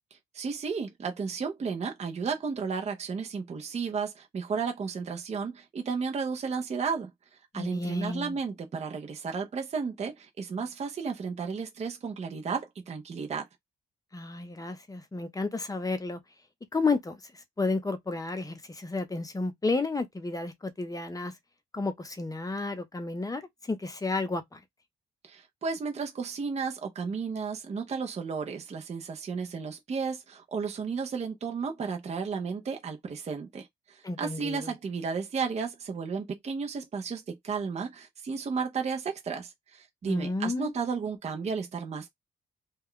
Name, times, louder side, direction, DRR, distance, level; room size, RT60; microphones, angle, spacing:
voice 1, 0.3-7.1 7.5-13.5 25.2-42.1, right 5 dB, 35° right, 0.6 m, -33 dB
voice 2, 7.5-8.4 14.1-16.2 16.7-21.3 21.7-24.6 34.0-34.7 40.1-40.7, left 3 dB, 15° left, 0.7 m, -32 dB
2.3 x 2.2 x 3.5 m
cardioid pair, 90°, 20 cm